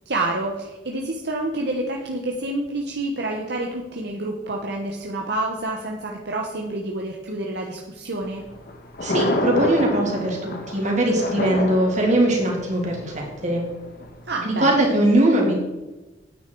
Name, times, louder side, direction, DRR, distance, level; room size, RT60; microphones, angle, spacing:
voice 1, 0.1-8.4 14.2-14.8, right 2 dB, 65° right, 0 dB, 1.2 m, -28 dB
Thunder, 8.2-14.2, left 1 dB, 55° left, 1.7 m, -29 dB
voice 2, 9.0-13.6 14.4-15.5, right 1 dB, 40° right, -1 dB, 3.1 m, -21 dB
9.6 x 9.1 x 4.8 m, 1.1 s
head